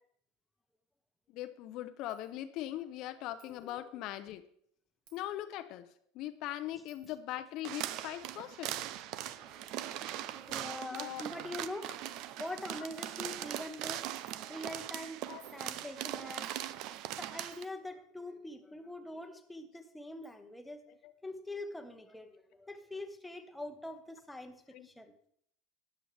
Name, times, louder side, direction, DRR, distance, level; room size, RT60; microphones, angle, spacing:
voice 1, 1.3-4.4 5.1-5.8 6.1-8.8 10.9-11.2 15.3-15.4 21.0-21.1 24.7-24.9, left 13 dB, 55° left, 0.6 m, -40 dB
Coin (dropping), 2.1-2.3 3.4-3.7 5.1-5.3 6.9-7.2 8.6-8.8 9.8-9.9 10.6-10.7 10.9-11.1 11.7-11.8 12.1-12.2 12.5-12.6 13.0-13.3 14.3-14.4 15.2-15.7 16.4-16.6 17.5-17.9 19.5-19.6 20.2-20.4, right 6 dB, 70° right, 2.3 m, -64 dB
sound 1, 7.6-17.6, right 13 dB, 55° right, 0.5 m, -40 dB
voice 2, 9.3-11.9 12.4-15.2 15.5-16.5 17.2-20.8 21.2-25.1, left 1 dB, 5° left, 1.1 m, -44 dB
13.0 x 9.9 x 3.4 m
supercardioid pair, 130°, 0 cm